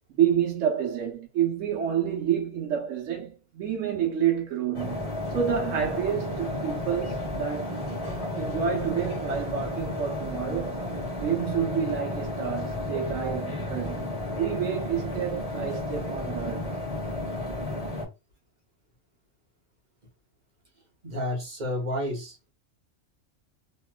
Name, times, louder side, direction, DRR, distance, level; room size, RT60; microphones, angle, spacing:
voice 1, 0.1-7.8 8.4-10.8 11.2-14.1 14.4-16.7, right 8 dB, 75° right, 1.0 m, -29 dB
sound 1, 4.7-18.1, left 1 dB, 30° left, 1.1 m, -32 dB
voice 2, 21.0-22.4, left 1 dB, 40° right, 1.0 m, -30 dB
3.0 x 3.0 x 2.2 m
omnidirectional pair, 1.3 m